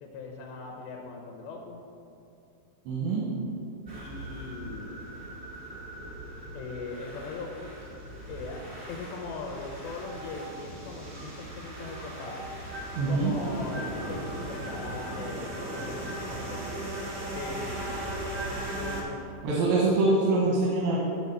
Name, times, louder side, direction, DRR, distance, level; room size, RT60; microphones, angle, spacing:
voice 1, 0.0-1.8 3.9-5.0 6.5-7.7 8.3-8.6 8.9-12.5 13.1-17.0 17.3-19.2 20.9-21.0, left 3 dB, 80° left, 1 dB, 2.9 m, -40 dB
voice 2, 2.9-3.2 13.0-13.3 19.4-21.0, right 3 dB, 85° right, -6 dB, 3.5 m, -24 dB
sound 1, 3.9-19.0, right 1 dB, 55° right, 0.7 m, -38 dB
11.0 x 3.9 x 7.1 m, 2.7 s
omnidirectional pair, 5.1 m